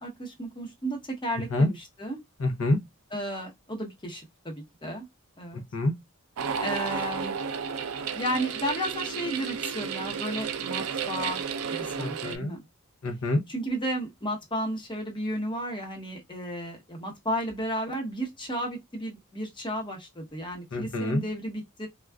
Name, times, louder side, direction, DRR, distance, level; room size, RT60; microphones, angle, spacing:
voice 1, 0.0-2.2 3.1-5.0 5.4-5.6 6.6-7.4 8.1-11.4 11.7-12.6 13.5-21.9, equal, 20° left, 0.9 m, -33 dB
voice 2, 2.4-2.8 5.5-5.9 12.0-12.5 13.0-13.4 20.7-21.2, left 2 dB, 65° left, 0.6 m, -26 dB
sound 1, 6.4-12.4, right 6 dB, 70° right, 0.5 m, -32 dB
3.5 x 2.3 x 2.3 m
head